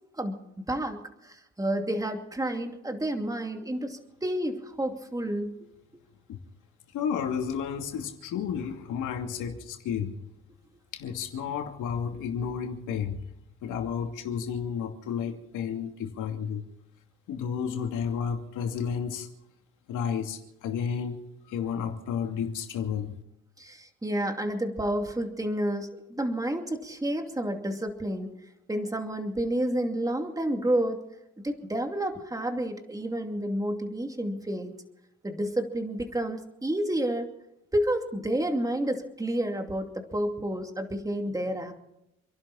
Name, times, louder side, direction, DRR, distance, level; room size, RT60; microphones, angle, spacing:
voice 1, 0.1-5.6 23.6-28.3 28.7-31.0 31.4-34.7 35.2-37.3 37.7-41.8, right 1 dB, 10° right, 2.6 m, -30 dB
voice 2, 6.9-10.1 10.9-13.2 13.6-16.6 17.3-19.3 19.9-21.2 21.5-23.2, left 7 dB, 85° left, 2.7 m, -32 dB
28.5 x 11.5 x 4.2 m
cardioid pair, 90°, 30 cm